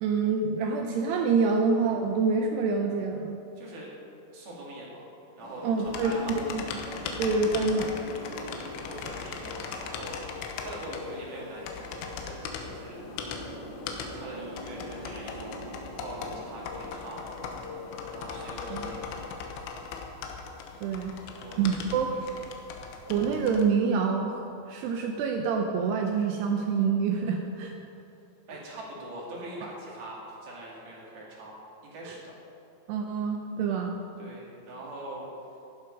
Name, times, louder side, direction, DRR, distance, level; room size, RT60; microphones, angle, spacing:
voice 1, 0.0-3.4 5.6-6.6 7.2-7.9 18.3-18.4 18.7-18.9 20.8-21.1 21.6-22.1 23.1-27.7 32.0-32.2 32.9-34.0, right 5 dB, 80° right, 3 dB, 2.4 m, -27 dB
voice 2, 3.6-3.9 4.3-5.1 5.4-6.5 8.3-10.2 10.6-13.0 14.1-15.6 16.0-17.2 18.1-19.0 21.4-22.3 22.8-23.1 28.5-31.5 31.8-32.3 34.2-35.3, right 1 dB, 55° right, -4 dB, 3.8 m, -43 dB
sound 1, 5.4-19.3, left 1 dB, 65° left, 4.8 m, -43 dB
sound 2, 5.9-23.7, left 5 dB, 85° left, 3.6 m, -39 dB
15.0 x 11.5 x 5.3 m, 2.7 s
omnidirectional pair, 5.7 m